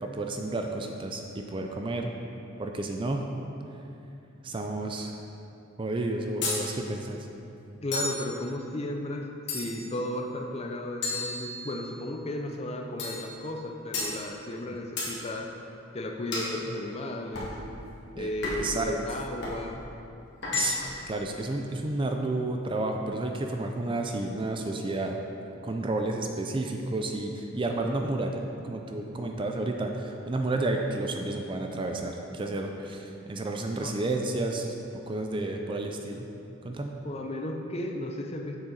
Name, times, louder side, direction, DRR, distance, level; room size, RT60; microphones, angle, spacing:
voice 1, 0.0-2.1 2.6-3.3 4.4-5.1 5.8-7.2 14.6-14.8 18.2-19.0 20.5-20.8 21.1-25.2 25.6-34.7 35.1-36.3 36.6-37.0, right 2 dB, 25° right, 3 dB, 0.4 m, -31 dB
sound 1, 6.4-6.7 7.9-8.3 9.5-9.9 11.0-11.9 13.0-13.3 13.9-14.2 15.0-15.2 16.3-16.6 17.3-17.6 18.4-18.8 19.4-19.6 20.4-21.0, left 2 dB, 55° left, 1.6 m, -32 dB
voice 2, 7.8-15.5 15.9-17.5 18.1-19.8 33.8-33.9 37.0-38.6, left 1 dB, 30° left, 3 dB, 0.5 m, -34 dB
7.1 x 6.8 x 3.9 m, 2.7 s
head